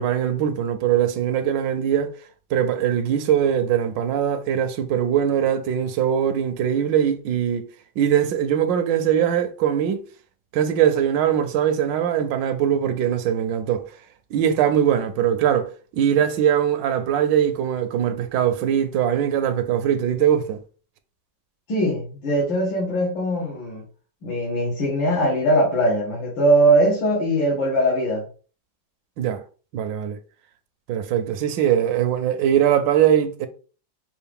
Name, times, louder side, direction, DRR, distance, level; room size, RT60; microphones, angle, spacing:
voice 1, 0.0-2.1 2.5-7.7 8.0-10.0 10.5-13.9 14.3-20.6 29.2-29.4 29.7-30.2 30.9-33.5, right 9 dB, 80° right, 1.3 m, -21 dB
voice 2, 21.7-23.8 24.2-28.2, right 1 dB, 80° left, 2.1 m, -21 dB
5.6 x 2.5 x 3.4 m
omnidirectional pair, 2.0 m